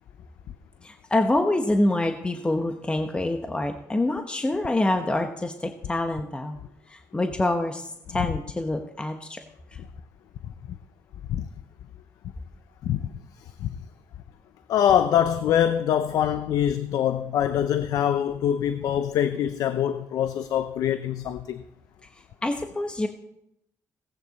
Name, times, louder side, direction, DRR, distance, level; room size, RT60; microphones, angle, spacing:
voice 1, 0.8-6.6 6.9-9.4 9.7-9.8 22.1-23.1, left 2 dB, 15° left, 1.1 m, -26 dB
voice 2, 14.7-21.6, left 10 dB, 75° left, 0.6 m, -24 dB
17.0 x 8.9 x 4.1 m
cardioid pair, 85°, 6 cm